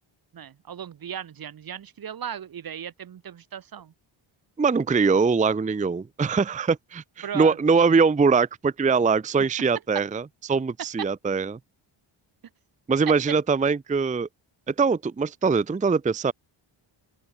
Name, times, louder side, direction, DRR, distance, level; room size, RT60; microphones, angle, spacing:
voice 1, 0.3-3.9 7.2-7.6, right 8 dB, 45° right, 0.8 m, -36 dB
voice 2, 4.6-11.6 12.9-14.3 14.7-16.3, right 5 dB, 15° right, 0.6 m, -22 dB
open air
cardioid pair, 70°, 50 cm